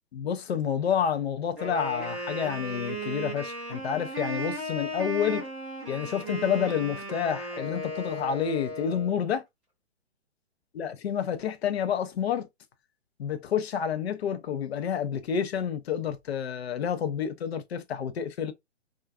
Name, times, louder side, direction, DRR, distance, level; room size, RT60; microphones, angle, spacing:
voice 1, 0.1-5.4 5.9-9.4 10.7-12.5 13.2-18.5, left 8 dB, 60° left, 0.6 m, -29 dB
Wind instrument woodwind instrument, 1.5-9.2, right 1 dB, ahead, 0.4 m, -36 dB
2.4 x 2.2 x 2.3 m
figure-of-eight pair, 125°, 35 cm